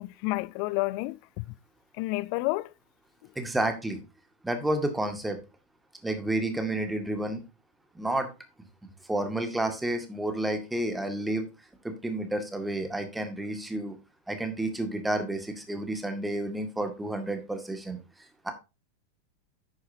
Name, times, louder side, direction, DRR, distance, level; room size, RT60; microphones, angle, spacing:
voice 1, 0.0-1.4 2.0-2.7, left 21 dB, 45° left, 0.4 m, -30 dB
voice 2, 3.4-4.0 4.4-5.4 6.0-7.4 8.0-8.3 9.1-11.5 11.8-14.0 14.3-18.0 18.4-18.5, right 1 dB, 5° right, 2.0 m, -30 dB
10.5 x 8.8 x 2.8 m
figure-of-eight pair, 90°, 0 cm